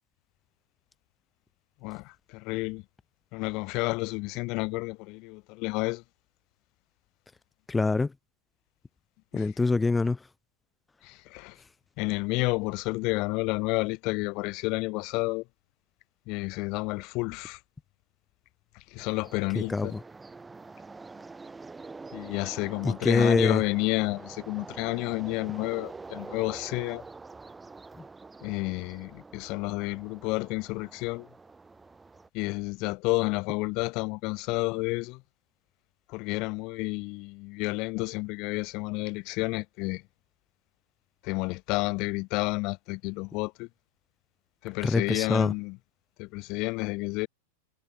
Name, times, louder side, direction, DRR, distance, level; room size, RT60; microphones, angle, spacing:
voice 1, 1.8-2.8 3.3-6.0 9.3-9.5 11.0-11.6 12.0-15.4 16.3-17.6 18.9-20.0 22.1-27.0 28.4-31.3 32.3-35.2 36.1-40.0 41.2-43.7 44.6-45.8 46.2-47.3, left 25 dB, 40° left, 3.0 m, -30 dB
voice 2, 7.7-8.1 9.3-10.2 19.5-20.0 22.8-23.6 44.8-45.5, left 3 dB, 10° left, 1.4 m, -24 dB
sound 1, 19.0-32.3, right 3 dB, 10° right, 3.6 m, -46 dB
figure-of-eight pair, 90°, 0 cm